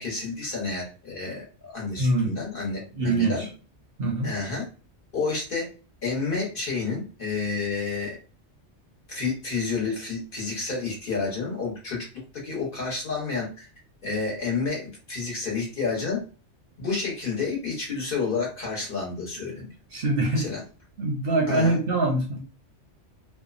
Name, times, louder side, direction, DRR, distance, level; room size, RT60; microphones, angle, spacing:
voice 1, 0.0-3.5 4.2-4.6 5.1-5.7 6.0-8.2 9.1-12.1 12.4-13.7 14.0-16.2 16.8-19.7 20.4-20.6 21.5-21.8, left 4 dB, 50° left, -2 dB, 1.2 m, -30 dB
voice 2, 2.0-2.4 2.9-3.5 4.0-4.3 19.9-20.5 21.0-22.4, right 2 dB, 60° right, 1 dB, 0.7 m, -24 dB
2.6 x 2.2 x 2.4 m, 0.35 s
omnidirectional pair, 1.2 m